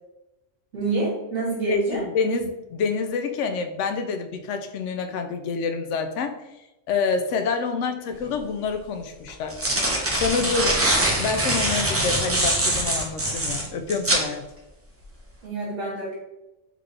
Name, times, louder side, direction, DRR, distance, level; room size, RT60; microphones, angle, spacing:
voice 1, 0.7-2.0 15.4-16.2, right 2 dB, 65° right, -6 dB, 1.6 m, -26 dB
voice 2, 1.7-6.4 6.9-9.6 10.1-10.8 11.2-14.4, left 4 dB, 75° left, 7 dB, 0.9 m, -27 dB
sound 1, 8.2-8.3 9.3-14.3, right 1 dB, 20° right, 0.4 m, -23 dB
3.8 x 3.5 x 3.3 m, 0.97 s
omnidirectional pair, 1.3 m